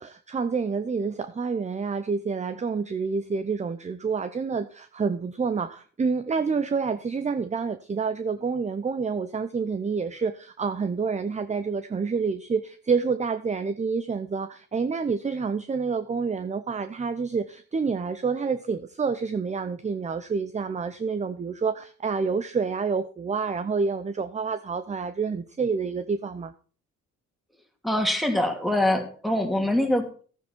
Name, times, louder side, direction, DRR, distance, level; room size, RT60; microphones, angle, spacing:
voice 1, 0.0-26.5, right 5 dB, 25° right, 0.7 m, -28 dB
voice 2, 27.8-30.2, left 1 dB, ahead, 2.6 m, -24 dB
13.5 x 9.2 x 4.5 m
cardioid pair, 90°, 30 cm